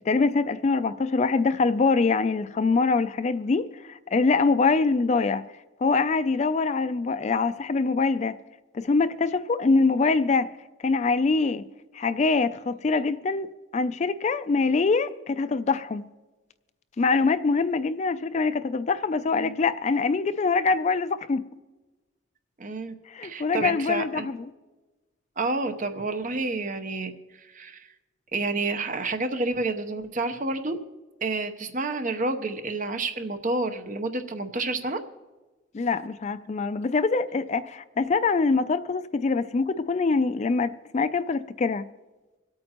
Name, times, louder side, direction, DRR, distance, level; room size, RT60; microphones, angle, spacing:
voice 1, 0.1-5.4 5.8-8.4 8.7-10.5 10.8-11.6 11.9-16.1 17.0-21.5 23.1-24.5 35.7-41.9, left 4 dB, 35° left, 0.3 m, -24 dB
voice 2, 22.6-22.9 23.2-24.3 25.4-27.9 28.3-30.8 31.2-35.0, right 3 dB, 40° right, 0.8 m, -29 dB
25.5 x 8.7 x 3.0 m
head